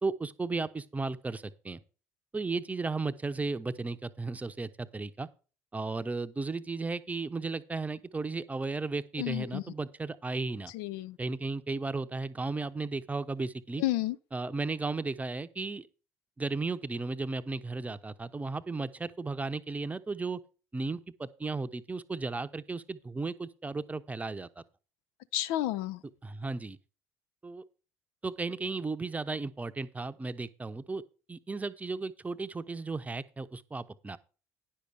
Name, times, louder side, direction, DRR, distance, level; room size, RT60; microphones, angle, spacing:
voice 1, 0.0-1.8 2.3-5.3 5.7-10.7 11.2-13.8 14.3-15.9 16.4-20.4 20.7-24.6 26.2-26.8 27.4-27.6 28.2-31.0 31.3-34.2, right 3 dB, 20° right, 0.7 m, -35 dB
voice 2, 9.2-9.6 10.7-11.2 13.8-14.2 25.3-26.0, left 15 dB, 70° left, 0.4 m, -31 dB
10.0 x 6.6 x 4.9 m
hypercardioid pair, 60°, 8 cm